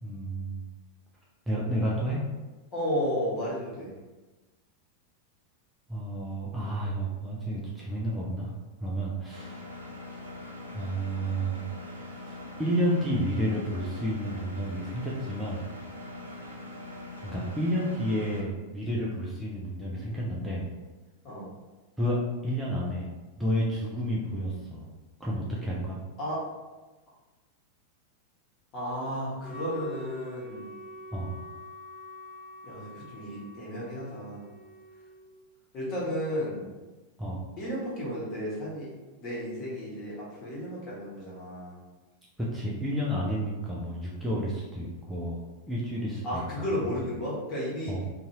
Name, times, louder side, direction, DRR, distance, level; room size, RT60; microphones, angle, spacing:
voice 1, 0.0-0.6 1.5-2.2 5.9-8.5 8.8-9.6 10.7-11.7 12.2-15.7 17.2-20.7 22.0-22.2 22.4-23.1 23.4-24.8 25.2-26.0 31.1-31.3 37.2-37.4 42.4-46.4 47.9-48.0, equal, 5° right, -6 dB, 0.5 m, -31 dB
voice 2, 2.7-3.9 21.2-21.5 26.2-26.4 28.7-30.7 32.6-34.5 35.7-36.8 37.6-38.9 39.2-41.8 46.2-47.9, equal, 35° left, -7 dB, 1.2 m, -33 dB
Engine, 9.3-18.4, left 2 dB, 80° right, 0.5 m, -42 dB
Wind instrument woodwind instrument, 29.4-35.3, left 1 dB, 30° right, 1.4 m, -45 dB
2.6 x 2.4 x 2.8 m, 1.2 s
figure-of-eight pair, 90°, 0 cm